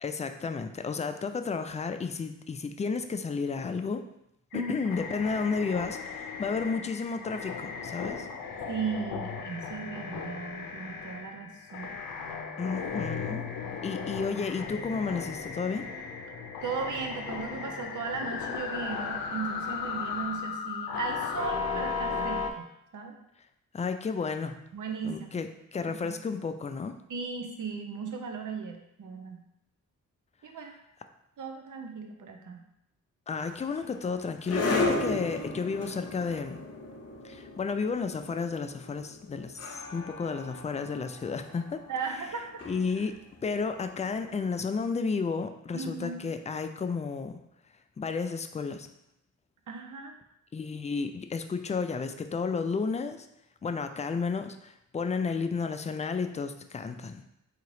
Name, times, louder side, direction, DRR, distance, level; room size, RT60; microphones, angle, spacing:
voice 1, 0.0-4.0 4.5-8.3 12.6-13.5 13.8-15.9 23.7-24.6 25.0-27.0 33.3-36.7 37.2-41.8 42.7-43.2 43.4-47.4 48.0-48.9 50.5-53.3 53.6-57.2, left 5 dB, 20° left, 8 dB, 0.3 m, -32 dB
sound 1, 4.5-22.5, left 5 dB, 85° left, 0.5 m, -36 dB
voice 2, 8.7-12.0 16.6-22.7 22.9-23.2 24.7-25.4 25.9-26.2 27.1-29.4 30.4-30.7 31.4-32.6 41.9-42.6 43.0-43.1 45.7-46.3 49.7-50.2, right 5 dB, 60° right, 3 dB, 0.7 m, -37 dB
sound 2, 33.3-44.4, left 2 dB, 45° left, 0.7 m, -36 dB
3.8 x 2.8 x 3.1 m, 0.81 s
cardioid pair, 50°, 34 cm